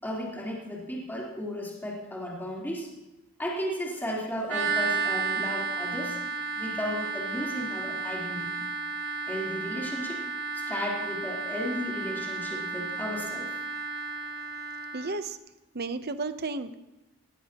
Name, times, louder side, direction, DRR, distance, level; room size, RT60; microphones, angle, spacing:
voice 1, 0.0-2.9 3.4-6.2 6.6-8.5 9.3-10.2 10.5-13.6, equal, 10° left, -5 dB, 3.6 m, -34 dB
sound 1, 4.5-15.1, right 4 dB, 85° right, 4.8 m, -33 dB
voice 2, 14.9-15.4 15.7-16.7, right 3 dB, 45° right, 10 dB, 0.8 m, -33 dB
19.0 x 18.0 x 3.0 m, 0.99 s
head